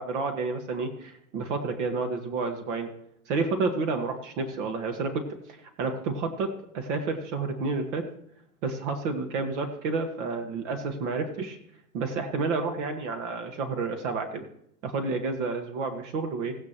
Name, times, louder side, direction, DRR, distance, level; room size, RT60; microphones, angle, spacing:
voice 1, 0.0-2.9 3.3-5.2 5.8-8.0 8.6-11.6 11.9-14.5 14.8-16.6, right 4 dB, 55° right, 5 dB, 1.8 m, -30 dB
17.0 x 9.6 x 3.1 m, 0.69 s
hypercardioid pair, 115°, 43 cm